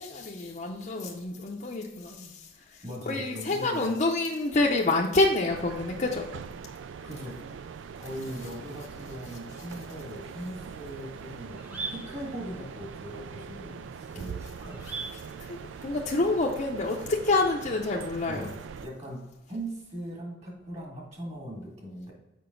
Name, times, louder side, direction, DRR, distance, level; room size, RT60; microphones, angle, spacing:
voice 1, 0.0-6.3 14.8-18.5, left 2 dB, 40° left, -1 dB, 0.5 m, -28 dB
voice 2, 2.8-3.9 7.0-7.4 7.9-14.8 18.3-22.1, right 1 dB, 35° right, -1 dB, 2.0 m, -40 dB
sound 1, 5.5-18.9, right 6 dB, 85° right, 0.3 m, -42 dB
sound 2, 10.7-16.0, right 4 dB, 10° right, 0.9 m, -44 dB
6.8 x 5.1 x 3.8 m, 1.0 s
head